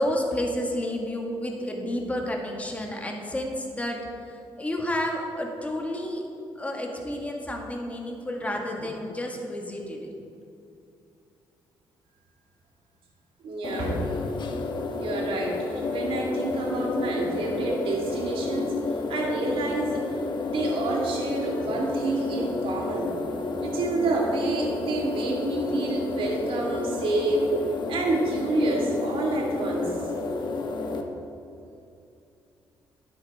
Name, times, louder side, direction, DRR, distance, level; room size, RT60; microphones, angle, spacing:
voice 1, 0.0-4.0 4.3-6.2 6.5-10.1, left 1 dB, 15° left, 1 dB, 1.6 m, -30 dB
voice 2, 13.4-14.0 15.0-18.8 19.1-20.1 20.4-23.1 23.6-27.4 27.9-30.0, right 2 dB, 70° right, -1 dB, 2.1 m, -28 dB
sound 1, 13.6-31.0, left 3 dB, 55° left, 1.0 m, -31 dB
9.6 x 8.3 x 4.1 m, 2.6 s
cardioid pair, 75°, 10 cm